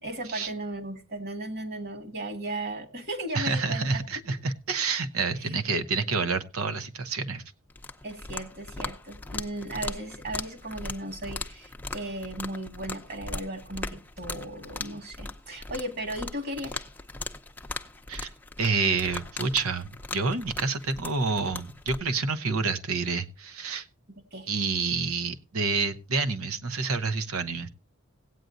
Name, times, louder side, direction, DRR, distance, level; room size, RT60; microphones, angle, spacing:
voice 1, 0.0-4.0 5.5-5.6 8.0-16.8 24.3-24.5, right 1 dB, 45° right, 7 dB, 1.8 m, -36 dB
voice 2, 3.3-7.4 18.1-18.3 18.6-23.9 24.5-27.7, right 4 dB, 80° right, 12 dB, 0.8 m, -28 dB
sound 1, 7.7-22.0, left 3 dB, 10° left, 0.6 m, -39 dB
16.5 x 9.1 x 2.6 m, 0.32 s
head